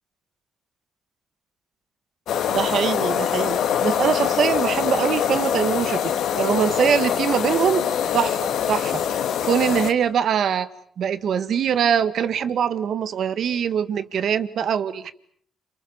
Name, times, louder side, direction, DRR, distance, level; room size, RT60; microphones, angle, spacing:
sound 1, 2.3-9.9, left 9 dB, 75° left, 2.5 m, -24 dB
voice 1, 2.5-7.9 8.1-10.7 11.0-15.1, right 8 dB, 65° right, 13 dB, 1.7 m, -23 dB
28.5 x 27.5 x 7.1 m, 0.63 s
cardioid pair, 90°, 0 cm